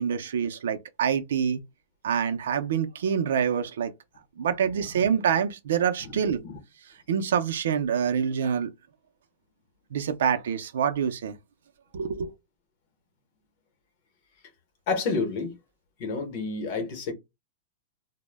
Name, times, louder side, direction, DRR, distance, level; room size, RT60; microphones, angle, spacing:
voice 1, 0.0-1.6 2.0-3.9 4.4-6.4 7.1-8.7 9.9-11.4 11.9-12.3, right 7 dB, 80° right, 0.4 m, -26 dB
voice 2, 6.0-6.5 14.9-15.5 16.0-17.1, left 4 dB, 40° left, 0.8 m, -30 dB
2.1 x 2.0 x 3.2 m
supercardioid pair, 170°, 0 cm